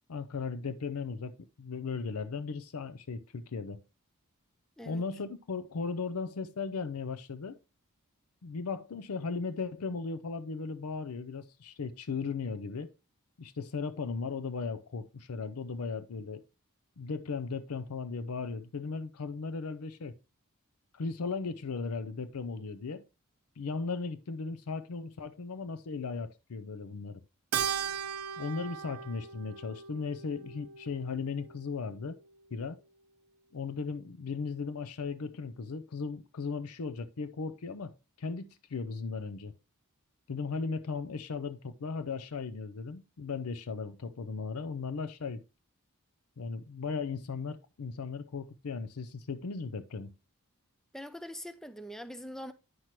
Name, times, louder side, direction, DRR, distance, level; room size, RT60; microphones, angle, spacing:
voice 1, 0.1-3.8 4.9-7.6 8.4-12.9 13.4-16.4 17.0-20.1 20.9-23.0 23.6-27.2 28.4-32.2 32.5-32.8 33.5-37.9 38.2-39.5 40.3-45.4 46.4-50.1, left 4 dB, 75° left, 0.6 m, -37 dB
Keyboard (musical), 27.5-32.1, right 8 dB, 70° right, 0.6 m, -38 dB
voice 2, 50.9-52.5, equal, ahead, 0.4 m, -43 dB
9.4 x 5.9 x 3.1 m
head